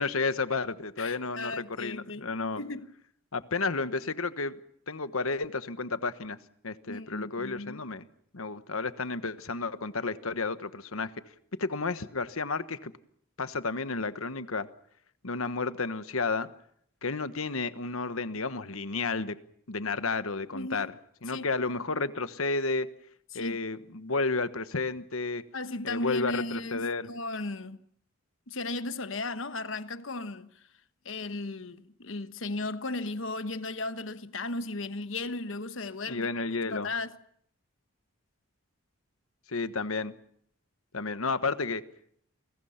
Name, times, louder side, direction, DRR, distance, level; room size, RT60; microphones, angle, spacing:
voice 1, 0.0-2.6 3.3-4.6 4.9-6.4 6.6-8.1 8.3-11.1 11.6-12.9 13.4-14.7 15.2-16.5 17.0-19.4 19.7-20.9 21.2-22.9 23.3-25.4 25.8-27.1 36.1-36.9 39.5-40.1 40.9-41.8, left 3 dB, 80° left, 1.3 m, -31 dB
voice 2, 1.0-2.9 6.9-7.8 20.5-20.9 21.3-21.5 23.3-23.6 25.5-27.8 28.5-30.5 31.0-36.3 36.6-37.1, left 2 dB, 65° left, 1.2 m, -36 dB
29.0 x 22.0 x 5.8 m
head